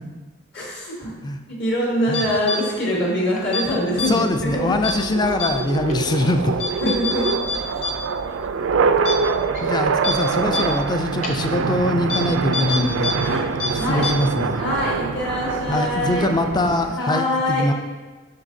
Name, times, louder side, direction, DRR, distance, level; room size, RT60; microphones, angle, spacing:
voice 1, 0.5-4.7 6.8-7.2 10.4-10.6 13.2-13.4 13.7-14.0 14.5-16.3 16.9-17.7, left 1 dB, 60° left, -4 dB, 1.4 m, -24 dB
sound 1, 2.1-2.6 3.4-3.6 4.0-4.1 4.8-5.0 5.4-5.5 5.9-6.0 6.6-7.9 8.2-8.3 8.7-8.8 9.1-9.2 9.5-9.6 10.0-10.1 10.5-10.6 11.2-11.3 12.1-12.2 12.5-13.1 13.4-13.7 14.0-14.1, left 4 dB, 40° left, 0.8 m, -25 dB
sound 2, 3.9-17.0, right 5 dB, 85° right, 0.4 m, -25 dB
voice 2, 4.1-6.5 6.8-6.9 9.6-13.1 13.9-14.6 15.7-17.7, left 1 dB, 20° left, 6 dB, 0.4 m, -22 dB
11.0 x 3.7 x 2.7 m, 1.3 s
head